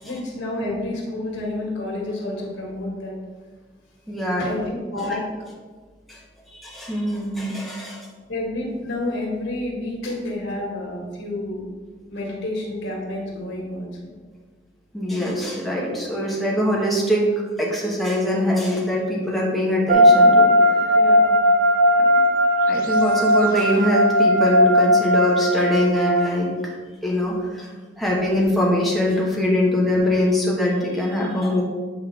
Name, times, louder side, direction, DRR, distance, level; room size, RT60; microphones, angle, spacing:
voice 1, 0.0-3.2 4.4-5.2 8.3-11.6 12.1-13.9 20.9-21.4, left 2 dB, 90° left, -2 dB, 1.9 m, -29 dB
voice 2, 4.1-4.5 5.0-5.2 6.1-6.2 6.5-8.1 14.9-17.3 17.6-20.5 22.0-22.1 22.7-26.5 27.0-27.7 28.0-31.6, left 1 dB, ahead, -4 dB, 1.1 m, -22 dB
sound 1, 19.9-26.3, equal, 45° right, 0.4 m, -17 dB
8.0 x 4.3 x 3.6 m, 1.5 s
head